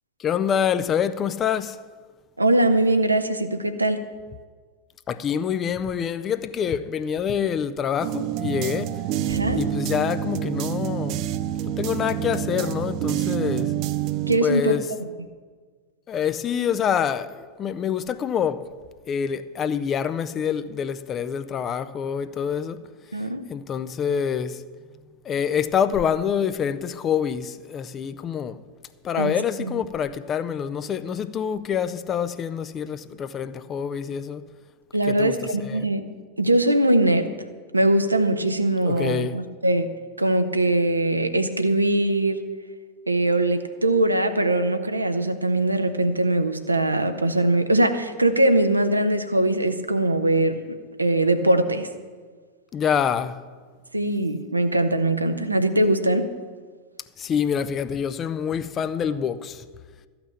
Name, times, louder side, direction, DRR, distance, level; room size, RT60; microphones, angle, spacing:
voice 1, 0.2-1.8 5.1-9.0 9.6-11.2 11.8-13.8 14.4-14.8 16.1-18.7 19.1-22.8 23.5-24.6 25.3-28.6 29.0-34.4 35.1-35.4 35.7-35.9 38.8-39.4 52.7-53.4 57.2-59.6, left 8 dB, 25° left, 0.5 m, -26 dB
voice 2, 2.4-4.0 9.3-9.6 14.3-14.8 23.1-23.4 29.2-29.3 29.6-29.7 34.9-36.1 36.4-37.2 37.7-39.9 40.2-42.4 43.1-50.6 51.0-51.9 53.9-56.2, right 1 dB, 85° right, 0.9 m, -21 dB
sound 1, 8.0-14.4, right 11 dB, 40° right, 0.5 m, -27 dB
13.5 x 5.9 x 8.5 m
figure-of-eight pair, 90°, 0 cm